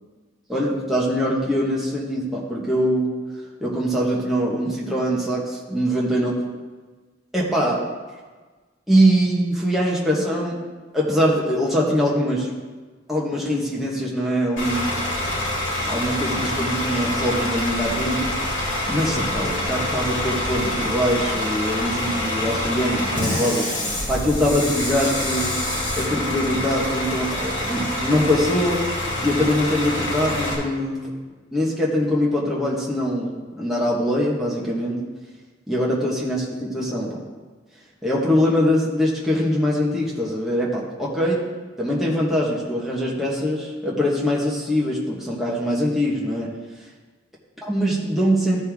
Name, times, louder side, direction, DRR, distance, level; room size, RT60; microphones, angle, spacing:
voice 1, 0.5-3.1 3.6-6.3 7.3-7.8 8.9-10.6 10.9-12.5 13.1-14.9 15.8-18.3 18.9-23.7 24.1-25.5 26.0-28.8 29.2-31.1 31.5-35.0 35.7-37.2 38.0-41.4 41.8-46.5 47.6-48.6, equal, ahead, -6 dB, 1.3 m, -22 dB
Bus / Idling, 14.6-30.5, left 1 dB, 60° left, 3.2 m, -26 dB
14.5 x 5.5 x 3.6 m, 1.4 s
head